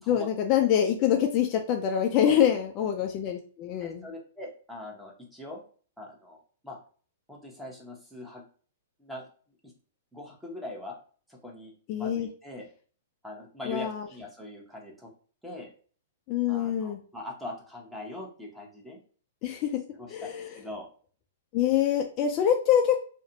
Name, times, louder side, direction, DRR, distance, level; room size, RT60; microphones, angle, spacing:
voice 1, 0.1-4.1 11.9-12.3 13.7-14.1 16.3-17.0 19.4-19.8 20.1-20.6 21.5-23.0, left 9 dB, 40° left, 4 dB, 0.3 m, -25 dB
voice 2, 3.8-5.6 6.0-6.8 7.3-8.4 9.0-9.3 9.6-9.7 10.1-11.0 11.3-12.7 13.2-15.1 15.4-15.7 16.5-19.0 19.9-20.9, left 2 dB, 5° right, -1 dB, 0.8 m, -42 dB
2.4 x 2.1 x 2.7 m, 0.41 s
hypercardioid pair, 125°, 0 cm